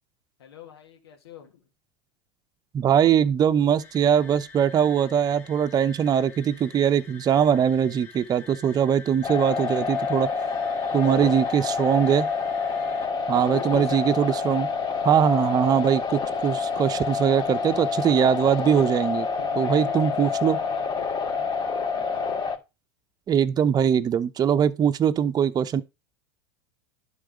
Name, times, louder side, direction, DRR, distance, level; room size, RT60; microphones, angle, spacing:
voice 1, 0.4-1.6 11.1-12.2 13.3-14.7 17.6-18.0 19.4-22.4, left 8 dB, 85° left, 1.9 m, -44 dB
voice 2, 2.7-10.3 10.9-12.3 13.3-14.7 15.0-19.3 19.6-20.6 23.3-25.8, right 8 dB, 30° right, 0.8 m, -21 dB
sound 1, 3.8-13.1, left 5 dB, 15° left, 2.9 m, -48 dB
sound 2, 9.2-22.6, left 5 dB, 35° left, 3.2 m, -28 dB
11.5 x 4.0 x 4.9 m
hypercardioid pair, 100°, 13 cm